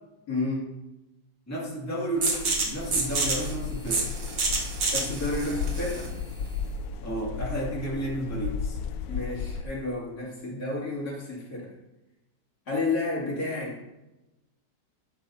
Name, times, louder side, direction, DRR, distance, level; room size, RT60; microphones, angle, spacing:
voice 1, 0.3-0.7 4.9-6.1 9.1-11.7 12.7-13.8, left 2 dB, 60° left, -5 dB, 3.5 m, -31 dB
voice 2, 1.5-4.1 7.0-8.8, right 1 dB, 10° left, -5 dB, 2.2 m, -32 dB
sound 1, 2.2-7.7, right 3 dB, 85° right, 2.4 m, -29 dB
sound 2, 2.8-9.6, left 7 dB, 80° left, 1.3 m, -35 dB
12.0 x 10.5 x 2.8 m, 0.98 s
omnidirectional pair, 1.9 m